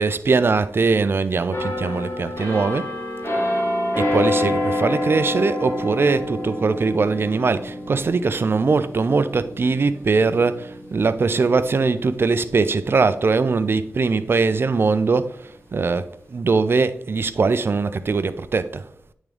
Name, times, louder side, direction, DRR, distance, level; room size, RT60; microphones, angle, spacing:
voice 1, 0.0-2.9 4.0-18.9, right 4 dB, 50° right, 0.4 m, -21 dB
sound 1, 1.5-13.1 13.5-13.7, left 1 dB, 65° left, 2.0 m, -28 dB
10.5 x 3.6 x 3.3 m
wide cardioid pair, 75°, 5 cm